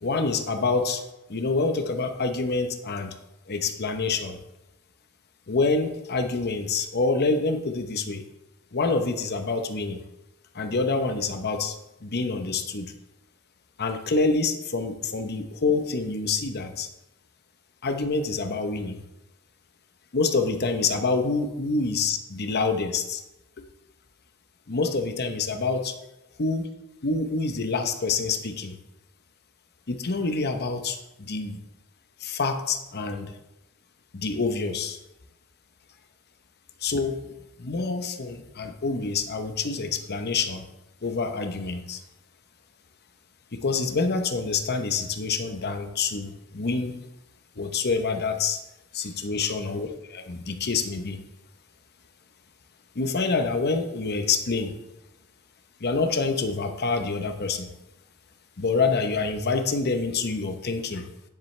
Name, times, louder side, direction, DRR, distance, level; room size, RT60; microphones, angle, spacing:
voice 1, 0.0-1.0 1.3-3.1 3.5-4.4 5.5-8.2 8.7-10.0 10.5-12.9 13.8-16.9 17.8-19.0 20.1-23.2 24.7-26.0 26.4-26.7 27.0-28.8 29.9-31.6 32.2-33.3 34.1-35.0 36.8-37.2 37.6-40.7 41.0-42.0 43.5-47.1 47.6-48.6 48.9-51.2 52.9-54.8 55.8-57.7 58.6-61.1, left 4 dB, 50° left, 7 dB, 0.9 m, -27 dB
9.9 x 7.5 x 3.3 m, 0.93 s
head